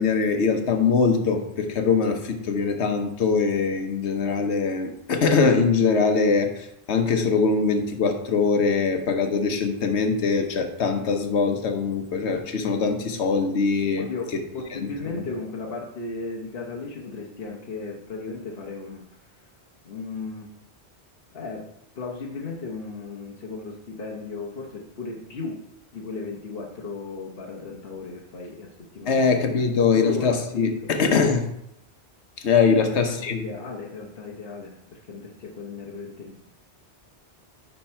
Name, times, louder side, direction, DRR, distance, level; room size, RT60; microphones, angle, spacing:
voice 1, 0.0-14.1 14.3-14.4 14.7-14.8 15.2-15.3 29.1-31.5 32.4-33.4, left 5 dB, 85° left, 5 dB, 1.2 m, -22 dB
voice 2, 14.0-14.3 14.5-19.3 19.8-20.5 21.3-21.7 22.0-25.6 25.9-29.2 29.9-30.7 32.7-36.4, left 3 dB, 60° left, -2 dB, 1.1 m, -35 dB
10.0 x 3.4 x 4.3 m, 0.81 s
omnidirectional pair, 1.1 m